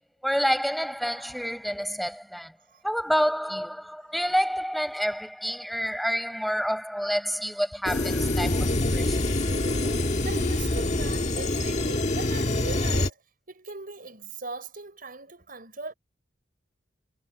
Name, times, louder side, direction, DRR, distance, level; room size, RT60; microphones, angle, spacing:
voice 1, 0.2-2.5 2.8-9.2, equal, ahead, 7.0 m, -28 dB
sound 1, 7.8-13.1, left 1 dB, 40° left, 1.6 m, -25 dB
voice 2, 10.2-13.2 13.5-15.9, right 3 dB, 50° right, 6.3 m, -39 dB
head